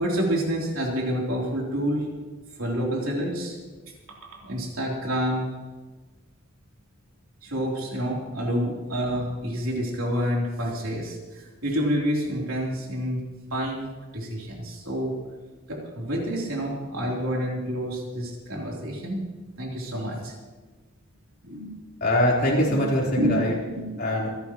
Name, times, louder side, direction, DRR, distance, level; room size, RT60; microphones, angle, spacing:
voice 1, 0.0-2.1 2.6-3.6 4.1-5.5 7.4-13.2 13.5-15.2 15.7-19.2 19.6-20.4 21.4-21.8 22.7-22.8 23.2-23.4 23.7-24.0, equal, 85° right, -2 dB, 3.5 m, -28 dB
voice 2, 22.0-23.5 24.0-24.3, left 1 dB, 50° left, -4 dB, 4.0 m, -23 dB
26.5 x 11.5 x 3.1 m, 1.3 s
head